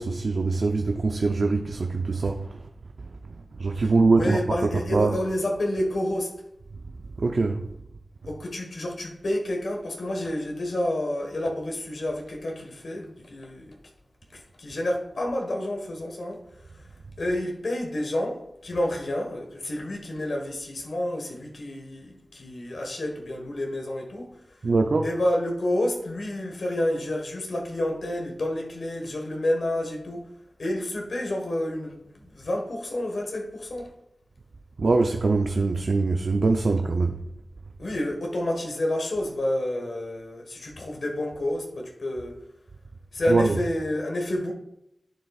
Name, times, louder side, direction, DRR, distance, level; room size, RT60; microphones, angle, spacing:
voice 1, 0.0-2.6 3.3-5.2 7.2-7.6 24.6-25.1 34.8-37.2 43.3-43.6, right 3 dB, 75° right, 0.5 m, -23 dB
voice 2, 3.7-6.3 8.3-13.7 14.3-16.9 17.2-24.6 25.0-30.3 30.6-33.9 37.8-42.3 43.1-44.5, left 1 dB, 85° left, 1.4 m, -29 dB
11.0 x 6.8 x 2.4 m
wide cardioid pair, 75°, 0 cm